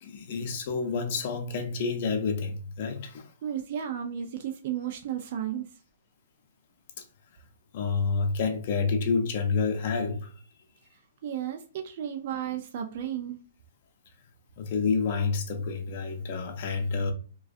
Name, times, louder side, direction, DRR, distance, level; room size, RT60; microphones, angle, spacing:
voice 1, 0.0-3.3 7.7-10.3 14.6-17.1, left 4 dB, 50° left, 0.6 m, -28 dB
voice 2, 3.4-5.7 11.2-13.4, right 10 dB, 50° right, 0.4 m, -33 dB
2.5 x 2.2 x 2.4 m
hypercardioid pair, 140°, 0 cm